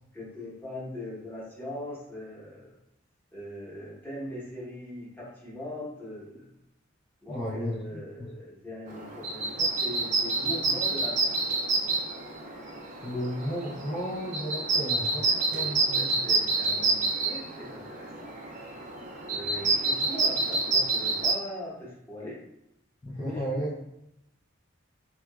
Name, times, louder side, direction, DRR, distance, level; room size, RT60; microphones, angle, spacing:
voice 1, 0.1-2.8 3.3-6.5 7.2-11.4 14.7-18.3 19.3-22.4 23.2-23.8, left 1 dB, 10° left, -7 dB, 0.9 m, -41 dB
voice 2, 7.3-8.3 13.0-16.1 23.0-23.8, equal, 25° left, -7 dB, 0.4 m, -34 dB
sound 1, 8.9-21.3, right 3 dB, 35° right, 0.4 m, -28 dB
2.8 x 2.3 x 2.2 m, 0.83 s
head